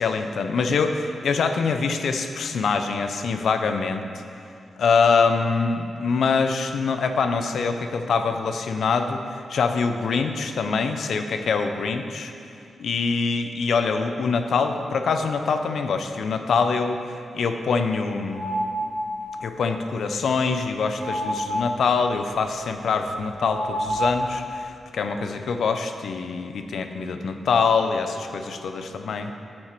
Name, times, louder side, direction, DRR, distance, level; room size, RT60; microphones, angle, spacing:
voice 1, 0.0-4.2 4.8-9.2 9.5-12.3 12.8-17.0 17.3-18.5 19.4-29.3, left 5 dB, 70° left, 7 dB, 0.6 m, -24 dB
sound 1, 18.3-19.3 21.0-22.0 23.5-24.6, equal, 10° right, 2.3 m, -28 dB
8.8 x 7.7 x 4.5 m, 2.5 s
wide cardioid pair, 170°, 0 cm